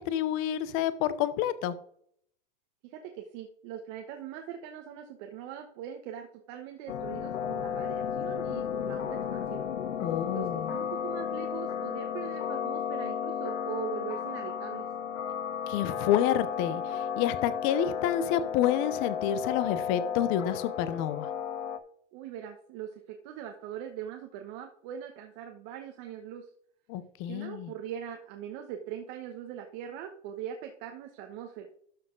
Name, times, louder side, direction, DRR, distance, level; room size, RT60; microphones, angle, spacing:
voice 1, 0.0-1.8 10.0-10.7 15.7-21.3 26.9-27.7, left 10 dB, 35° left, 14 dB, 0.8 m, -29 dB
voice 2, 2.8-9.6 10.3-14.9 22.1-26.5 27.3-31.7, right 9 dB, 35° right, 4 dB, 1.1 m, -41 dB
sound 1, 6.9-21.8, left 8 dB, 80° left, 1.1 m, -33 dB
12.5 x 5.2 x 3.8 m, 0.64 s
hypercardioid pair, 135°, 37 cm